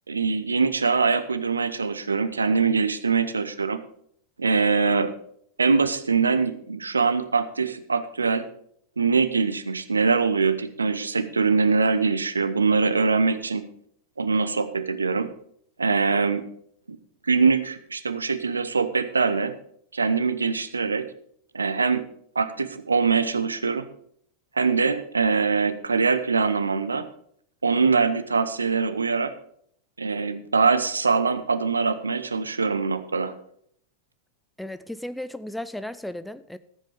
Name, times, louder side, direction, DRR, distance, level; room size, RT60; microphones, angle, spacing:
voice 1, 0.1-3.8 4.4-5.1 5.6-8.5 9.0-13.6 14.2-15.3 15.8-16.4 16.9-17.0 17.3-19.5 19.9-21.1 21.5-22.0 22.3-23.9 24.6-27.1 27.6-29.3 30.0-33.3, right 4 dB, 75° right, 0.8 m, -23 dB
voice 2, 34.6-36.6, left 1 dB, ahead, 0.5 m, -35 dB
13.5 x 7.7 x 5.0 m
figure-of-eight pair, 90°, 0 cm